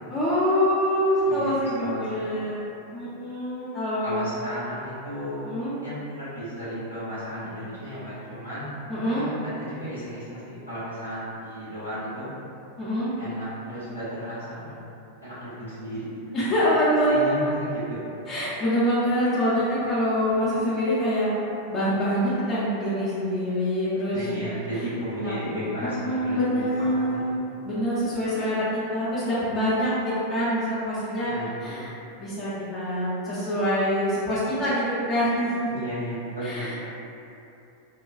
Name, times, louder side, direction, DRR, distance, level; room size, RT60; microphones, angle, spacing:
voice 1, 0.1-2.6 2.9-4.2 5.4-5.7 8.9-9.3 12.8-13.1 16.3-17.3 18.3-21.3 21.7-24.2 25.2-25.3 26.0-27.4 27.6-31.3 31.6-31.9 32.2-35.7 36.4-36.7, equal, 30° left, -10 dB, 0.6 m, -25 dB
voice 2, 1.2-2.2 4.0-8.7 9.1-12.3 13.2-16.4 17.1-18.0 24.1-27.4 31.2-31.9 35.7-36.8, equal, 85° right, -14 dB, 1.4 m, -34 dB
2.8 x 2.2 x 2.4 m, 2.8 s
figure-of-eight pair, 90°, 0 cm